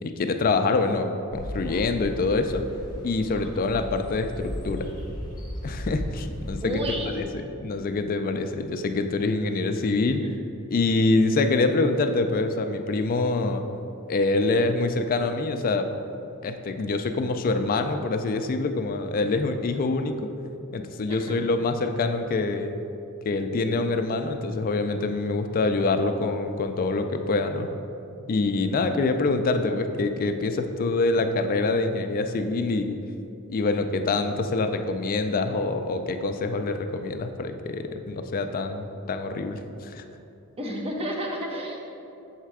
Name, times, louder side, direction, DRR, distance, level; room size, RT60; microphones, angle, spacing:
voice 1, 0.0-2.7 3.0-4.9 5.6-6.9 7.2-10.3 10.7-13.6 14.1-15.9 16.4-20.3 20.7-22.7 23.2-27.7 28.3-33.0 33.5-40.0, left 3 dB, 40° left, 7 dB, 0.3 m, -25 dB
sound 1, 1.3-7.2, equal, 20° left, 1.2 m, -36 dB
voice 2, 3.4-3.7 6.6-7.1 10.2-10.3 21.1-21.4 40.6-41.8, equal, 25° right, 0 dB, 0.8 m, -32 dB
7.2 x 3.3 x 4.7 m, 2.8 s
head